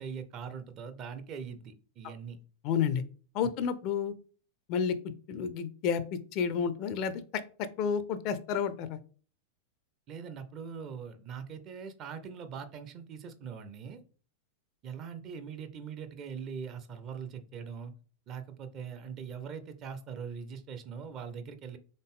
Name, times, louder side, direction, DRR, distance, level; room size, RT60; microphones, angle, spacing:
voice 1, 0.0-2.4 10.1-14.0 14.8-17.9 18.3-21.8, right 6 dB, 35° right, 10 dB, 0.6 m, -42 dB
voice 2, 2.6-3.0 3.3-4.1 4.7-5.0 5.3-9.0, left 7 dB, 40° left, 13 dB, 0.5 m, -31 dB
4.0 x 3.6 x 3.6 m, 0.41 s
figure-of-eight pair, 90°, 0 cm